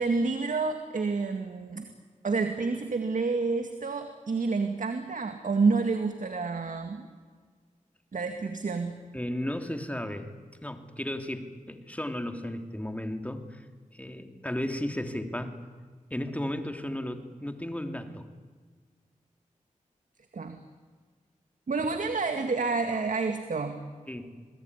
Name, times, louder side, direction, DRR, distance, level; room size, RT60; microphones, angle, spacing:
voice 1, 0.0-1.9 2.2-7.1 8.1-9.0 20.3-20.6 21.7-23.8, right 4 dB, 70° right, 6 dB, 2.0 m, -29 dB
voice 2, 9.1-10.3 10.6-13.6 13.9-15.6 16.1-18.3 24.1-24.4, left 1 dB, 10° left, 6 dB, 3.1 m, -34 dB
28.0 x 20.0 x 9.8 m, 1.5 s
cardioid pair, 60°, 14 cm